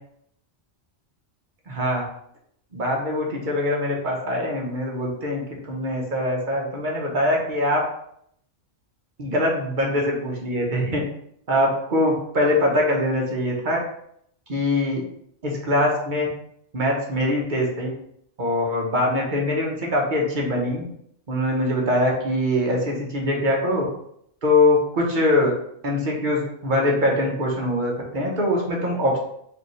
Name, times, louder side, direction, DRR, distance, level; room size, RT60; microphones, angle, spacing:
voice 1, 1.7-2.0 2.7-7.8 9.2-11.0 11.5-13.8 14.5-15.0 15.4-16.3 16.7-17.9 18.4-20.9 21.3-23.8 24.4-25.5 25.8-29.2, left 1 dB, 45° right, -1 dB, 1.0 m, -23 dB
4.8 x 2.6 x 3.1 m, 0.70 s
omnidirectional pair, 1.2 m